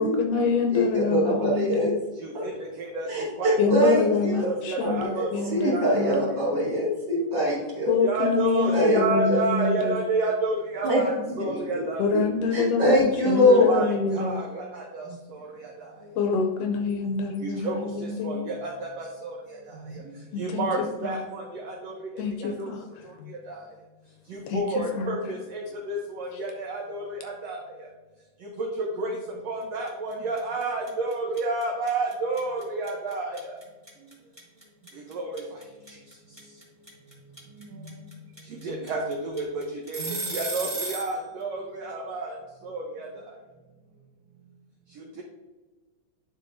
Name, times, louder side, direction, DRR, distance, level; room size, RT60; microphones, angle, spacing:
voice 1, 0.0-2.0 3.6-6.3 7.9-10.0 12.0-14.4 16.2-18.5 20.3-20.7 21.0-21.2 22.2-22.9 23.2-23.3 24.5-24.6 24.9-25.2, left 5 dB, 80° left, 4 dB, 2.1 m, -26 dB
voice 2, 0.7-1.9 2.3-2.5 3.1-4.5 4.8-5.2 5.5-7.9 8.7-9.4 10.8-11.0 11.5-11.8 12.1-12.2 12.5-13.8, equal, 35° right, -6 dB, 2.2 m, -23 dB
voice 3, 3.4-3.9 4.7-6.3 8.0-12.0 13.3-15.0 17.4-17.8 18.2-18.7 19.0-19.3 20.4-21.9 22.6-22.7 24.5-25.6 25.9-27.6 28.8-29.2 29.4-33.4 35.1-35.4 38.6-42.3 42.7-43.1, right 2 dB, 75° right, 0 dB, 1.5 m, -30 dB
sound 1, 29.9-30.1 30.4-41.1, right 2 dB, 15° right, 0.8 m, -34 dB
10.0 x 5.4 x 2.6 m, 1.3 s
omnidirectional pair, 4.1 m